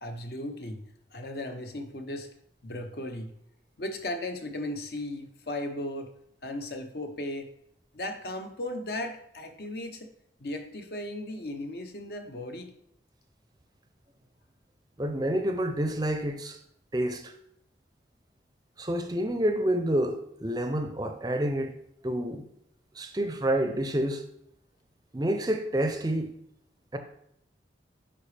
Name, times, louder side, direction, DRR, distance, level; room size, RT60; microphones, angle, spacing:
voice 1, 0.0-0.8 1.1-2.3 2.6-3.3 3.8-6.1 6.4-7.5 7.9-10.1 10.4-12.7, left 1 dB, 55° left, 0.7 m, -36 dB
voice 2, 15.0-16.6 16.9-17.3 18.8-21.7 22.0-22.4 22.9-24.2 25.1-26.3 26.9-27.0, right 1 dB, 20° right, 0.5 m, -28 dB
8.6 x 4.8 x 3.3 m
head